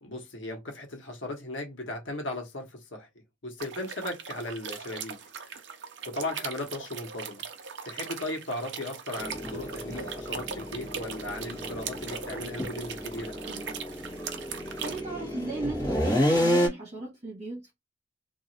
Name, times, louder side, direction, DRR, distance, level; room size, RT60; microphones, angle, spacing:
voice 1, 0.0-3.1 3.4-5.2 5.4-5.6 6.1-7.4 7.8-13.4, left 1 dB, 80° left, 1.1 m, -37 dB
sound 1, 3.6-15.0, right 6 dB, 65° right, 0.6 m, -40 dB
sound 2, 9.2-16.7, equal, 20° left, 1.3 m, -30 dB
voice 2, 14.4-17.7, right 2 dB, 35° right, 1.4 m, -37 dB
2.9 x 2.6 x 2.7 m
head